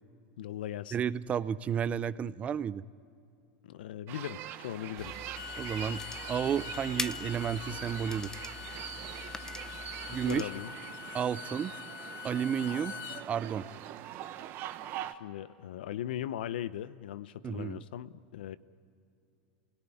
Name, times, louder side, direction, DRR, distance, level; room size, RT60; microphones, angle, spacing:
voice 1, 0.4-1.0 3.6-5.1 10.0-10.7 15.1-18.6, left 11 dB, 80° left, 15 dB, 0.8 m, -39 dB
voice 2, 0.9-2.8 5.6-6.0 6.3-8.4 10.1-10.5 11.1-11.7 12.2-12.9 13.3-13.7 17.4-17.8, right 8 dB, 25° right, 17 dB, 0.6 m, -32 dB
sound 1, 4.1-15.1, right 12 dB, 45° right, 1.0 m, -43 dB
sound 2, 5.0-10.4, left 3 dB, 10° left, 0.7 m, -43 dB
Bowed string instrument, 5.2-13.2, left 9 dB, 65° left, 1.8 m, -44 dB
28.0 x 17.5 x 10.0 m, 2.6 s
supercardioid pair, 125°, 5 cm